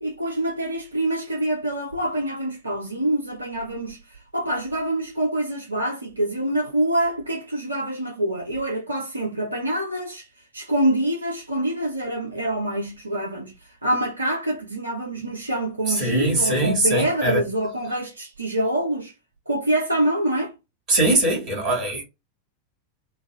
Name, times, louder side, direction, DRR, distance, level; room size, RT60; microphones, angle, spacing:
voice 1, 0.0-4.0 4.3-10.3 10.5-13.5 13.8-19.1 19.5-20.5, right 1 dB, 80° right, 0.5 m, -25 dB
voice 2, 15.9-17.4 20.9-22.0, right 1 dB, 40° right, 1.5 m, -21 dB
3.3 x 2.1 x 2.2 m
figure-of-eight pair, 90°, 0 cm